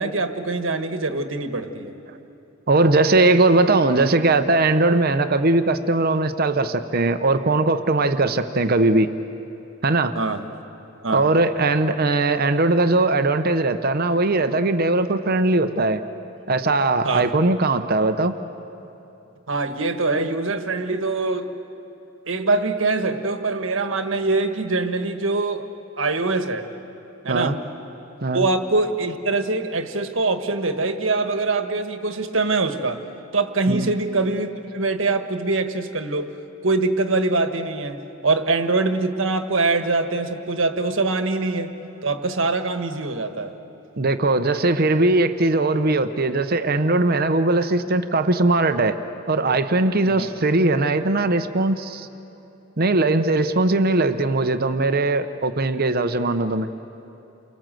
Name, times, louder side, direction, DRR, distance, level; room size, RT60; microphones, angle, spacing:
voice 1, 0.0-1.9 10.1-10.4 11.0-11.3 17.0-17.3 19.5-21.6 22.3-25.7 26.0-26.7 27.2-27.6 28.3-33.0 33.3-36.3 36.6-41.7 42.0-43.5 50.1-50.3, right 3 dB, 80° right, 7 dB, 1.5 m, -23 dB
voice 2, 2.7-9.1 9.8-10.2 11.1-16.0 16.5-18.3 27.3-27.6 28.2-28.4 33.7-33.9 44.0-49.0 49.3-52.1 52.8-56.7, right 2 dB, 50° right, 9 dB, 0.9 m, -20 dB
29.5 x 23.0 x 7.7 m, 3.0 s
head